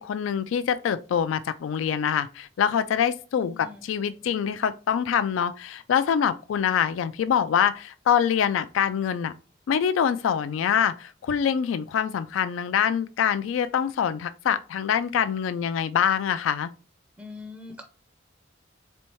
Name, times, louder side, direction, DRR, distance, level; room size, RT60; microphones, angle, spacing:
voice 1, 0.0-9.3 9.7-16.7, left 8 dB, 85° left, 0.3 m, -25 dB
voice 2, 3.4-4.3 17.2-17.8, left 3 dB, 10° right, 0.4 m, -43 dB
4.3 x 3.5 x 2.9 m
head